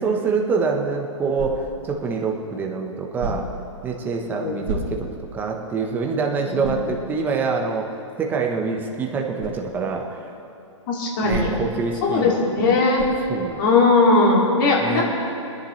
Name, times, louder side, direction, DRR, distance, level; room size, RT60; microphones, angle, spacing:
voice 1, 0.0-3.5 3.8-5.1 5.3-10.3 11.2-12.8 13.3-13.6 14.8-15.0, right 4 dB, 10° right, 1 dB, 1.0 m, -25 dB
sound 1, 1.3-1.9 3.2-3.7 4.6-5.3 5.8-5.9 6.6-7.0 9.4-9.6 11.3-11.8 12.9-13.3, right 3 dB, 40° right, 1.9 m, -31 dB
voice 2, 10.9-11.5 12.0-13.0 13.6-15.0, left 3 dB, 40° left, -2 dB, 2.5 m, -18 dB
22.5 x 10.5 x 3.2 m, 2.7 s
hypercardioid pair, 155°, 16 cm